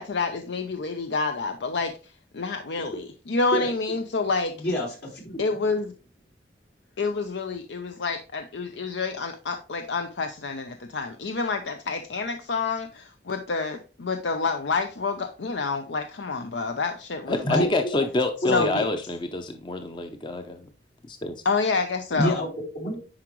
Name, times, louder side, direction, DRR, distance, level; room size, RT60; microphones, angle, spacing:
voice 1, 0.0-1.9 2.3-4.5 5.4-5.9 7.0-17.6 18.5-18.9 21.4-22.4, left 4 dB, 90° left, 7 dB, 0.6 m, -28 dB
voice 2, 4.6-5.4 17.4-17.9 18.4-18.7 22.2-23.0, left 1 dB, 75° left, -2 dB, 3.4 m, -27 dB
voice 3, 17.3-20.6 21.1-21.3, left 2 dB, 25° left, 7 dB, 0.6 m, -27 dB
9.6 x 4.9 x 3.1 m, 0.35 s
head